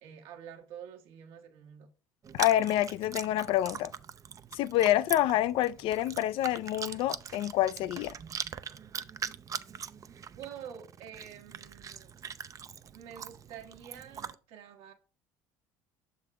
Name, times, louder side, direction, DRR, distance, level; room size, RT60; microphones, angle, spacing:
voice 1, 0.0-1.9 10.4-12.1 12.9-14.9, right 8 dB, 70° right, 1.2 m, -47 dB
Chewing mastication, 2.2-14.3, right 7 dB, 35° right, 0.4 m, -42 dB
voice 2, 2.3-3.9 4.5-8.2, left 13 dB, 60° left, 0.4 m, -27 dB
6.6 x 3.7 x 4.8 m
hypercardioid pair, 75°, 10 cm